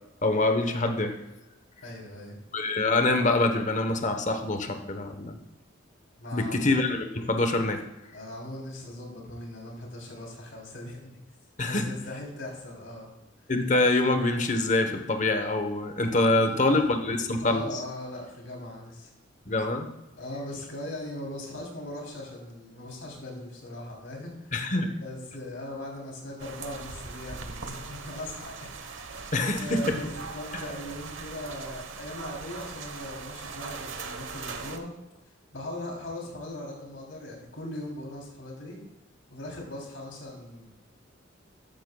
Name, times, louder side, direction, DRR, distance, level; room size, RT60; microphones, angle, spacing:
voice 1, 0.2-1.2 2.5-5.4 6.3-7.8 11.6-11.9 13.5-17.6 19.5-19.9 24.5-25.0 29.3-30.0, left 2 dB, 40° left, 6 dB, 1.0 m, -25 dB
voice 2, 1.8-2.4 6.2-6.7 8.1-11.2 11.7-13.1 16.2-16.8 17.4-19.1 20.2-24.5 25.0-34.9 35.3-38.8 39.3-40.7, left 1 dB, 75° left, -1 dB, 3.3 m, -40 dB
sound 1, 26.4-34.8, right 4 dB, 85° right, 1.1 m, -40 dB
13.0 x 10.0 x 2.3 m, 0.98 s
head